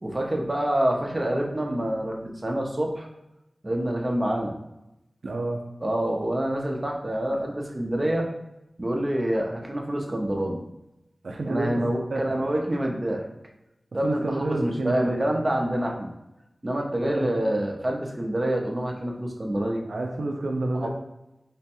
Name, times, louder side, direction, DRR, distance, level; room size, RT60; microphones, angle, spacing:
voice 1, 0.0-3.1 3.6-4.5 5.8-8.3 8.8-10.6 11.5-13.2 13.9-16.1 16.6-19.8 20.8-20.9, right 1 dB, 35° right, 0 dB, 0.6 m, -27 dB
voice 2, 5.2-5.7 11.2-12.2 14.0-15.3 17.0-17.3 19.9-20.9, right 2 dB, 90° right, 1 dB, 0.4 m, -29 dB
3.4 x 2.1 x 4.3 m, 0.92 s
wide cardioid pair, 55°, 0 cm